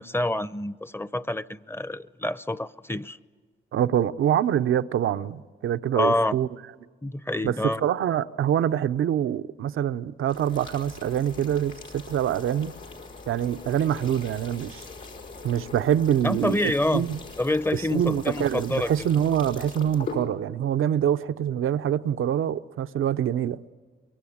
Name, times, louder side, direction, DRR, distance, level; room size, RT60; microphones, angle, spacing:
voice 1, 0.0-3.2 5.9-6.4 7.0-7.9 16.2-17.0 17.4-19.1, left 1 dB, 10° left, 0.7 m, -27 dB
voice 2, 3.7-6.5 7.4-7.5 7.8-12.8 13.3-14.8 15.4-16.6 16.9-17.2 17.7-23.6, right 10 dB, 85° right, 0.7 m, -25 dB
sound 1, 10.3-20.2, left 3 dB, 80° left, 5.2 m, -42 dB
24.0 x 23.0 x 8.7 m
cardioid pair, 70°, 20 cm